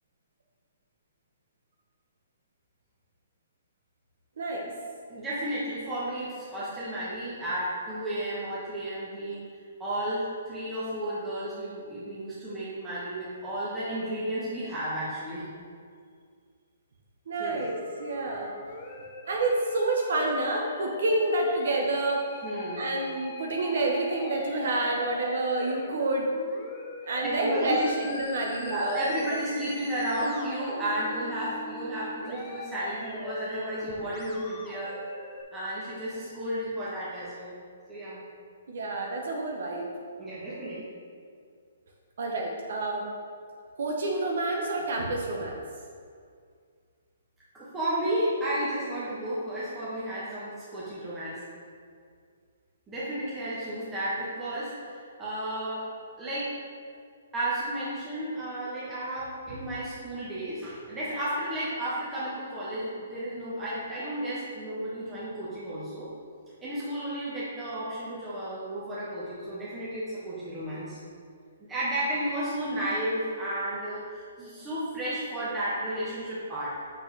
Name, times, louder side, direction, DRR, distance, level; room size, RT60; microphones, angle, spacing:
voice 1, 5.1-9.4 9.8-15.5 17.4-17.6 22.4-22.9 27.2-28.1 28.6-35.0 35.5-37.5 37.9-38.2 40.2-40.8 47.5-51.4 52.9-55.8 56.2-56.5 57.3-66.1 66.6-71.0 71.7-76.7, right 1 dB, 10° right, -11 dB, 1.2 m, -33 dB
voice 2, 17.3-18.5 19.2-22.2 22.8-26.3 27.1-29.2 38.7-39.9 42.2-43.0 43.8-45.6, right 2 dB, 65° right, 0 dB, 0.8 m, -28 dB
Musical instrument, 17.4-35.4, left 2 dB, 25° left, 0.7 m, -42 dB
6.2 x 6.1 x 3.3 m, 2.2 s
hypercardioid pair, 160°, 0 cm